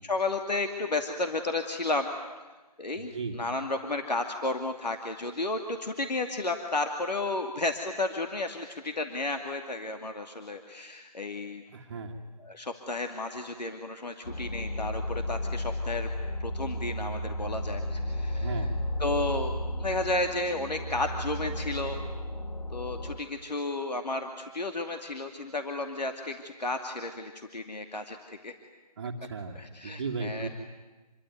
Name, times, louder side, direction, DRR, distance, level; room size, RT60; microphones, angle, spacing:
voice 1, 0.0-2.1 2.8-11.6 12.4-16.1 16.4-18.5 19.0-22.0 22.7-28.5 29.6-30.5, left 2 dB, 85° left, 5 dB, 2.5 m, -32 dB
voice 2, 3.0-3.4 11.7-12.2 18.3-18.8 29.0-30.5, right 4 dB, 30° right, -2 dB, 1.7 m, -36 dB
sound 1, 14.2-23.2, left 1 dB, 65° left, 3.1 m, -33 dB
27.5 x 23.0 x 9.5 m, 1.2 s
figure-of-eight pair, 165°, 21 cm